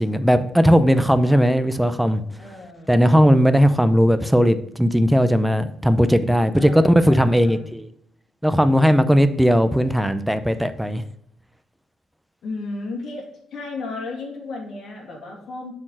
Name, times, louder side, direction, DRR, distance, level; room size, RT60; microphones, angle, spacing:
voice 1, 0.0-2.2 2.9-7.9 8.4-11.0, equal, 5° right, 11 dB, 0.6 m, -17 dB
voice 2, 2.4-2.9 6.6-7.7 12.4-15.7, left 3 dB, 65° left, -1 dB, 2.6 m, -34 dB
7.3 x 4.3 x 4.8 m, 0.71 s
cardioid pair, 90°, 0 cm